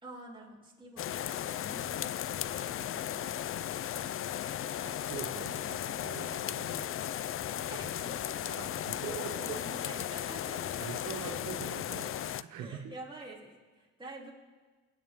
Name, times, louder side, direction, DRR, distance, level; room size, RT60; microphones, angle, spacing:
voice 1, 0.0-2.1 2.5-3.7 7.7-10.8 11.2-11.4 12.5-14.3, right 2 dB, 15° right, -4 dB, 3.2 m, -48 dB
sound 1, 1.0-12.4, left 11 dB, 45° left, 0.4 m, -36 dB
voice 2, 2.5-3.0 4.0-4.3 4.8-7.0 8.6-9.4 10.8-12.9, right 8 dB, 85° right, 4 dB, 1.1 m, -44 dB
25.5 x 9.2 x 3.7 m, 1.4 s
cardioid pair, 90°, 30 cm